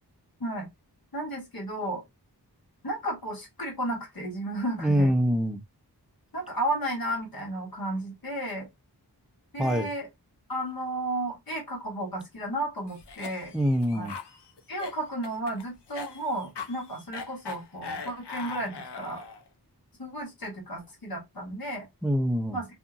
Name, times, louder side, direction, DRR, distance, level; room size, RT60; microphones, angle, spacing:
voice 1, 1.1-2.0 2.8-5.1 6.3-8.7 9.5-10.1 10.5-13.5 13.9-14.1 14.7-19.2 20.0-21.9 22.5-22.7, right 1 dB, 60° left, 1.5 m, -33 dB
voice 2, 4.8-5.6 9.6-9.9 13.5-14.1 22.0-22.6, equal, ahead, 0.4 m, -24 dB
Cough, 12.9-19.5, left 5 dB, 80° left, 0.6 m, -41 dB
2.8 x 2.5 x 2.3 m
wide cardioid pair, 55°, 40 cm